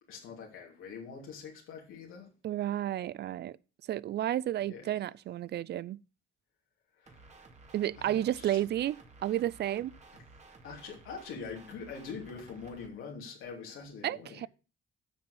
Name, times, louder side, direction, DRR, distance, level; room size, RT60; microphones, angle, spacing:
voice 1, 0.1-2.3 4.6-4.9 7.0-7.2 8.0-8.6 10.1-10.2 10.6-14.4, left 5 dB, 90° left, 3.0 m, -44 dB
voice 2, 2.4-3.6 3.9-6.0 7.7-8.9 9.2-9.9 14.0-14.5, right 12 dB, 60° right, 0.4 m, -32 dB
sound 1, 7.1-12.9, right 3 dB, 35° right, 2.2 m, -55 dB
8.5 x 6.0 x 6.4 m
cardioid pair, 90°, 20 cm